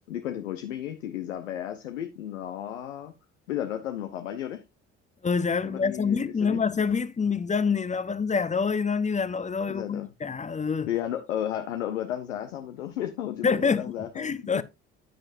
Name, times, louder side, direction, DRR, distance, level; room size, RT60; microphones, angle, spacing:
voice 1, 0.0-3.1 3.5-4.6 5.6-6.6 9.7-10.1 10.9-14.6, left 11 dB, 80° left, 0.8 m, -33 dB
voice 2, 5.2-10.9 13.4-13.9 14.2-14.6, left 5 dB, 20° left, 0.8 m, -26 dB
10.0 x 9.1 x 2.6 m
figure-of-eight pair, 55°, 37 cm